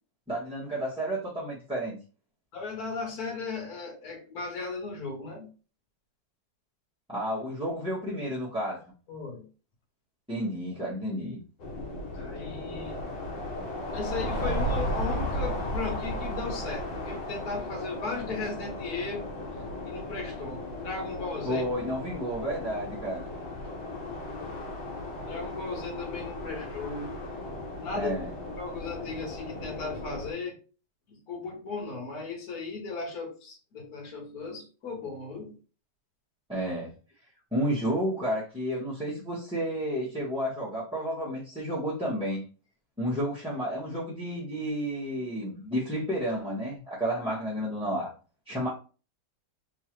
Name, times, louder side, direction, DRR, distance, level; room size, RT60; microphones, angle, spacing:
voice 1, 0.3-2.0 7.1-8.8 10.3-11.4 21.4-23.3 28.0-28.3 36.5-36.9 37.5-42.4 43.0-48.1 48.5-48.7, equal, 5° right, 1.0 m, -31 dB
voice 2, 2.5-5.5 9.1-9.5 12.1-13.0 13.9-19.3 19.8-21.6 25.3-27.2 27.8-28.1 28.6-30.6 31.1-35.6, left 4 dB, 60° left, 1.5 m, -36 dB
sound 1, 11.6-30.3, left 1 dB, 85° left, 1.8 m, -35 dB
3.6 x 3.1 x 3.0 m
omnidirectional pair, 2.0 m